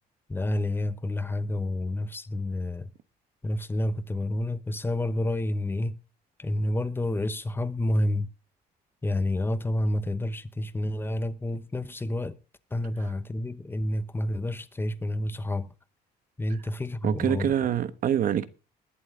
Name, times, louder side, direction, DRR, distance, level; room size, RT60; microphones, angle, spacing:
voice 1, 0.3-2.9 3.4-6.0 6.4-8.3 9.0-12.3 12.7-15.7 16.4-17.5, left 1 dB, 15° left, 1.0 m, -29 dB
voice 2, 17.0-18.5, right 10 dB, 55° right, 1.2 m, -25 dB
20.5 x 7.8 x 3.8 m
cardioid pair, 110°, 17 cm